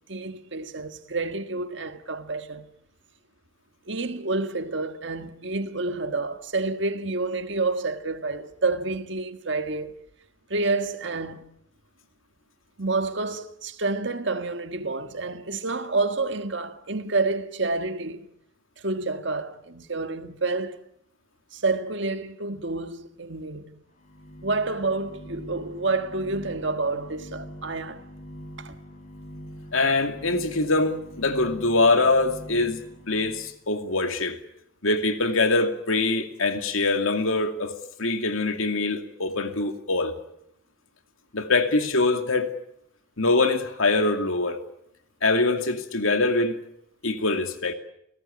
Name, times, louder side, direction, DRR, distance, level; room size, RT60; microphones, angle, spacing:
voice 1, 0.1-2.7 3.9-10.0 10.5-11.4 12.8-18.2 18.8-20.8 21.5-23.8 24.4-28.1 28.6-28.8, right 3 dB, 60° right, 1.6 m, -29 dB
sound 1, 23.9-33.6, equal, 35° left, 5.6 m, -43 dB
voice 2, 29.7-34.4 34.8-40.1 41.3-42.5 43.2-44.6 45.2-46.5 47.0-47.7, left 3 dB, 85° left, 2.5 m, -23 dB
29.0 x 18.0 x 8.6 m
head